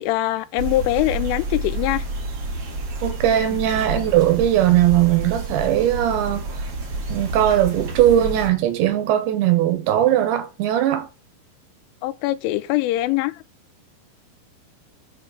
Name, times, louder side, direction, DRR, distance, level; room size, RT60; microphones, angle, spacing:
voice 1, 0.0-2.0 3.5-3.6 12.0-13.4, left 16 dB, 85° left, 3.0 m, -23 dB
sound 1, 0.6-8.5, right 2 dB, 45° right, 2.2 m, -29 dB
voice 2, 3.0-6.5 7.1-11.1, right 12 dB, 75° right, 3.3 m, -19 dB
7.0 x 4.4 x 6.4 m
omnidirectional pair, 5.5 m